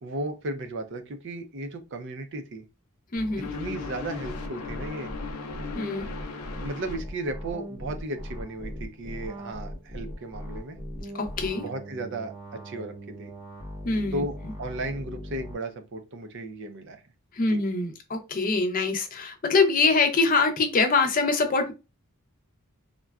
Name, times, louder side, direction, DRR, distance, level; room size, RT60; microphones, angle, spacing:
voice 1, 0.0-2.6 3.4-5.1 6.6-10.8 11.6-12.9 13.2-13.3 14.1-17.0 17.4-17.6, right 2 dB, 55° right, 7 dB, 0.5 m, -35 dB
voice 2, 3.1-3.5 5.7-6.1 11.1-11.7 13.8-14.2 17.3-21.7, left 4 dB, 40° left, 6 dB, 0.5 m, -24 dB
sound 1, 3.2-15.5, equal, 20° right, 0.8 m, -39 dB
sound 2, 3.4-7.0, left 5 dB, 90° left, 0.5 m, -38 dB
3.7 x 2.2 x 2.3 m, 0.27 s
head